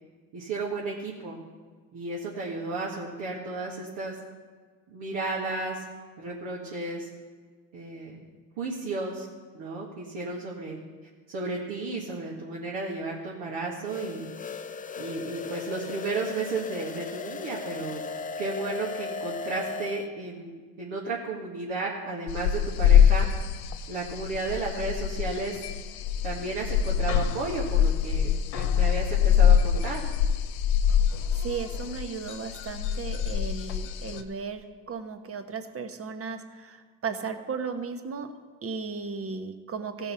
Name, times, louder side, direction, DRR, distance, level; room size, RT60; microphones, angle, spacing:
voice 1, 0.3-1.4 1.9-4.2 4.9-5.8 6.2-7.1 7.7-8.3 8.6-9.3 9.5-10.8 11.3-14.3 15.0-18.0 18.4-23.3 23.9-25.7 26.2-30.1, right 3 dB, 70° right, -4 dB, 1.9 m, -33 dB
sound 1, 13.9-20.1, left 4 dB, 20° left, 0.4 m, -37 dB
sound 2, 22.3-34.2, left 8 dB, 70° left, 1.0 m, -24 dB
voice 2, 31.4-38.3 38.6-40.1, right 5 dB, 30° right, 7 dB, 1.1 m, -35 dB
16.0 x 5.5 x 5.6 m, 1.5 s
hypercardioid pair, 70°, 48 cm